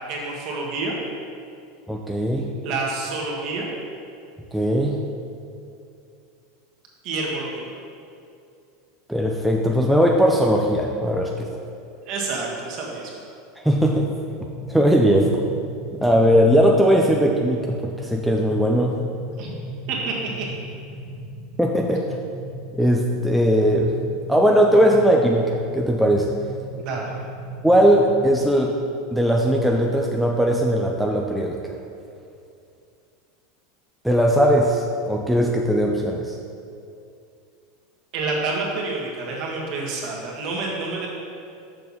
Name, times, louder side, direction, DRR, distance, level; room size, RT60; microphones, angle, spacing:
voice 1, 0.1-0.9 2.6-3.7 7.0-7.7 12.0-13.3 19.4-19.5 19.9-20.5 26.8-27.1 38.1-41.1, right 3 dB, 45° right, -2 dB, 1.5 m, -28 dB
voice 2, 1.9-2.5 4.5-5.0 9.1-11.5 13.6-14.1 14.7-15.3 16.0-19.0 21.6-22.1 22.8-23.9 24.3-26.3 27.6-28.8 29.1-31.6 34.0-36.4, equal, ahead, -1 dB, 0.4 m, -19 dB
sound 1, 14.3-28.2, right 1 dB, 60° left, 1.7 m, -37 dB
6.6 x 6.6 x 4.2 m, 2.5 s
supercardioid pair, 155°, 0 cm